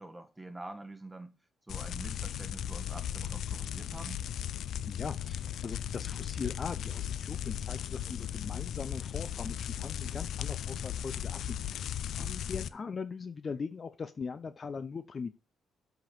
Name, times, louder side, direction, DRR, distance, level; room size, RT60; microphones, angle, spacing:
voice 1, 0.0-1.4 1.6-4.3 12.1-12.5, right 2 dB, 10° right, 1.6 m, -46 dB
sound 1, 1.7-12.7, left 10 dB, 70° left, 0.5 m, -36 dB
voice 2, 4.9-11.9 12.2-15.4, left 5 dB, 40° left, 0.7 m, -40 dB
7.7 x 5.3 x 5.9 m
cardioid pair, 90°, 0 cm